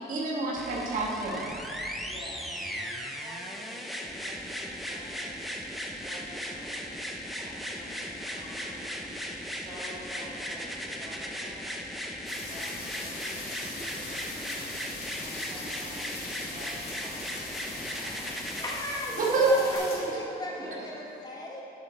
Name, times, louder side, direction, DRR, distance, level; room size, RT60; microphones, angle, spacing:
voice 1, 0.0-1.6 19.1-19.8 20.1-20.7, right 2 dB, 50° right, -3 dB, 1.6 m, -28 dB
sound 1, 0.6-18.8 19.7-19.8, equal, ahead, 0.6 m, -37 dB
voice 2, 2.0-5.4 6.0-6.8 7.3-11.7 12.5-14.7 15.2-16.2 16.5-18.4 19.4-20.1 20.4-20.9, equal, 25° right, -10 dB, 2.0 m, -47 dB
sound 2, 12.3-20.0, left 3 dB, 65° left, 1.8 m, -41 dB
voice 3, 18.6-21.6, left 1 dB, 20° left, -2 dB, 1.1 m, -36 dB
11.0 x 6.9 x 3.3 m, 2.8 s
cardioid pair, 135°, 18 cm